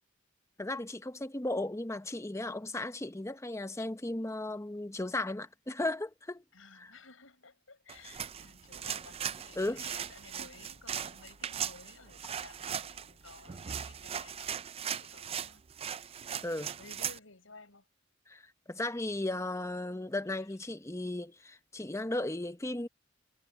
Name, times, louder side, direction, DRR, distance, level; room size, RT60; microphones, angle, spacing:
voice 1, 0.6-6.4 9.6-9.8 16.4-16.8 18.3-18.4 18.7-22.9, left 2 dB, 15° left, 0.8 m, -35 dB
voice 2, 6.5-14.5 15.0-17.9 20.4-20.5, left 4 dB, 90° left, 6.7 m, -55 dB
sound 1, 7.9-17.2, right 8 dB, 30° right, 0.4 m, -39 dB
sound 2, 8.1-14.6, equal, 70° right, 7.7 m, -64 dB
head